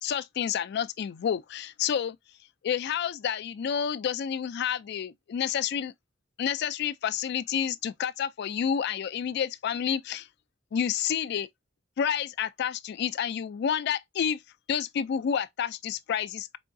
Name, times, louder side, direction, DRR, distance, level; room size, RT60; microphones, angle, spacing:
voice 1, 0.0-2.2 2.6-5.9 6.4-10.3 10.7-11.5 12.0-14.4 14.7-16.6, left 8 dB, 55° left, 0.3 m, -29 dB
4.6 x 3.4 x 2.5 m
head